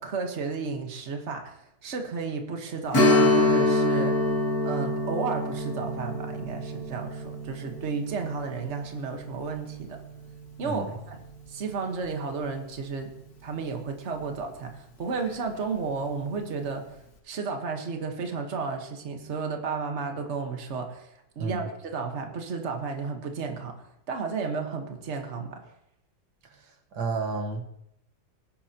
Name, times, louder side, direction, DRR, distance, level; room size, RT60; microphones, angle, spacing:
voice 1, 0.0-4.1 4.6-10.0 10.6-11.2 11.5-13.1 13.4-16.8 17.2-21.1 21.3-23.7 24.1-25.6, right 4 dB, 45° right, 4 dB, 1.6 m, -33 dB
Strum, 2.9-12.1 12.4-12.5 15.1-15.3 15.7-15.8, left 2 dB, 70° left, 2.1 m, -27 dB
voice 2, 10.6-11.0 21.4-21.7 26.5-27.6, right 4 dB, 90° right, 3 dB, 1.9 m, -32 dB
19.0 x 10.5 x 2.9 m, 0.78 s
omnidirectional pair, 1.7 m